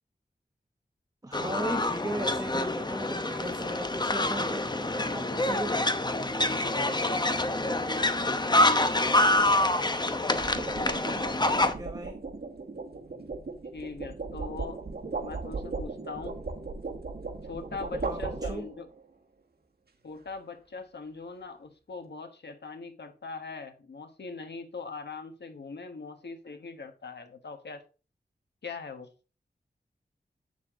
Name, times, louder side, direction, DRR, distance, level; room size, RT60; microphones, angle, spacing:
voice 1, 1.2-4.7 5.1-5.9 11.5-12.2 18.0-18.7, right 1 dB, 20° right, 1.0 m, -37 dB
sound 1, 1.3-11.7, left 2 dB, 25° left, 0.9 m, -26 dB
voice 2, 4.9-5.6 6.4-9.6 13.7-14.8 15.2-16.4 17.5-18.9 20.0-27.8 28.6-29.1, left 4 dB, 85° left, 1.3 m, -41 dB
sound 2, 10.2-19.0, right 3 dB, 65° right, 1.6 m, -37 dB
8.6 x 6.8 x 3.7 m
wide cardioid pair, 70°, 17 cm